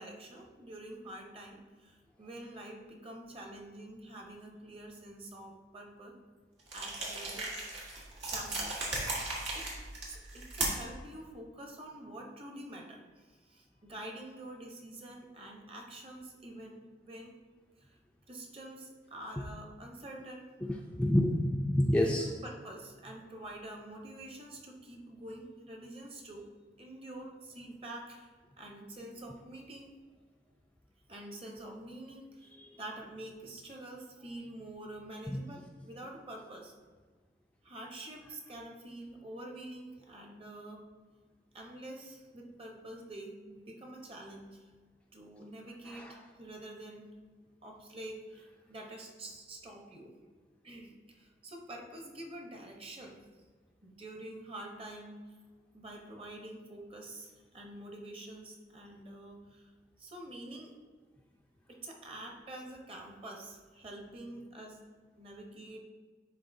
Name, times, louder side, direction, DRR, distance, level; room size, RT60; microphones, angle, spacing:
voice 1, 0.0-6.1 6.7-7.5 8.3-9.2 9.5-9.7 10.0-17.4 17.8-18.0 18.3-20.5 22.2-26.5 26.8-29.9 31.1-36.7 37.6-40.8 41.5-44.7 45.1-47.1 47.6-50.1 50.6-53.2 53.8-55.3 55.7-59.7 60.0-60.7 61.7-64.8 65.2-65.8, right 1 dB, 35° right, 1 dB, 0.9 m, -47 dB
sound 1, 6.7-11.0, right 2 dB, 85° right, 1.7 m, -36 dB
voice 2, 20.6-22.3 32.6-32.8 35.3-35.4 45.9-46.1, left 1 dB, 5° left, 0 dB, 0.4 m, -29 dB
10.5 x 3.7 x 2.7 m, 1.5 s
head